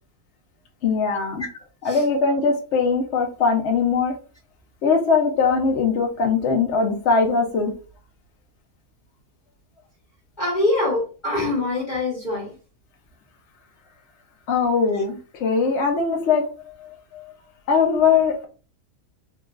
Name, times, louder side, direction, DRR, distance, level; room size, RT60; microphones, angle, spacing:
voice 1, 0.8-1.4 1.8-4.1 4.8-7.7 14.5-16.4 16.8-17.2 17.7-18.5, left 5 dB, 60° left, 1 dB, 0.8 m, -21 dB
voice 2, 10.4-12.5, left 2 dB, 35° left, -4 dB, 1.0 m, -24 dB
3.7 x 2.4 x 2.3 m, 0.35 s
omnidirectional pair, 1.6 m